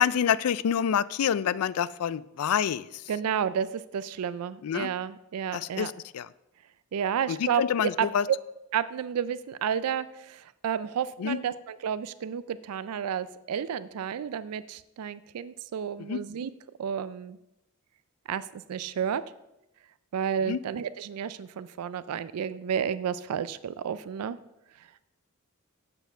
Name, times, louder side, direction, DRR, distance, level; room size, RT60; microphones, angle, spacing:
voice 1, 0.0-3.0 4.6-4.9 5.5-6.3 7.3-8.2 11.2-11.4 16.1-16.2 20.4-20.6, left 8 dB, 75° left, 18 dB, 0.4 m, -27 dB
voice 2, 3.1-5.9 6.9-8.4 8.7-16.5 16.8-17.4 18.3-19.2 20.1-24.4, right 8 dB, 80° right, 15 dB, 0.4 m, -31 dB
8.0 x 6.9 x 5.6 m, 0.89 s
head